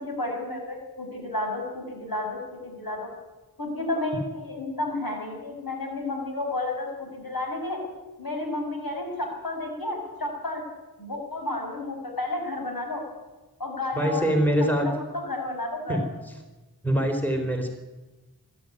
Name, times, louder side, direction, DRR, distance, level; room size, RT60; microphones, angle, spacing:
voice 1, 0.0-3.1 3.6-7.8 8.2-10.6 11.0-13.0 13.6-14.9 15.2-16.0, left 2 dB, 70° left, 1 dB, 6.6 m, -31 dB
voice 2, 14.0-14.9 15.9-16.0 16.8-17.7, equal, 5° left, 4 dB, 4.0 m, -23 dB
23.0 x 12.5 x 9.8 m, 1.2 s
wide cardioid pair, 50°, 37 cm